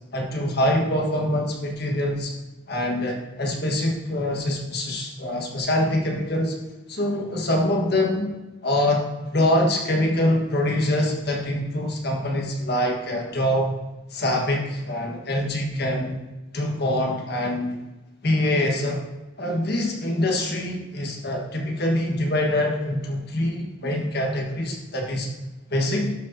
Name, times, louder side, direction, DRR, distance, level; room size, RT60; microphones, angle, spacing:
voice 1, 0.1-2.3 2.7-6.5 6.9-8.3 8.6-13.7 14.1-16.2 16.5-17.8 18.2-19.0 19.4-25.3 25.7-26.1, left 1 dB, 60° left, 1 dB, 1.6 m, -24 dB
12.5 x 6.4 x 2.8 m, 1.0 s
head